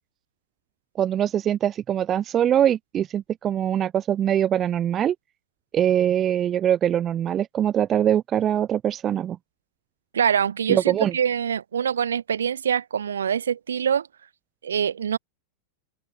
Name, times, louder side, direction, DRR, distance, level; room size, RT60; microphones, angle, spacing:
voice 1, 1.0-5.2 5.7-9.4 10.7-11.1, right 10 dB, 25° right, 0.3 m, -23 dB
voice 2, 10.1-14.1 14.6-15.2, right 8 dB, 70° right, 0.9 m, -24 dB
figure-of-eight pair, 90°, 0 cm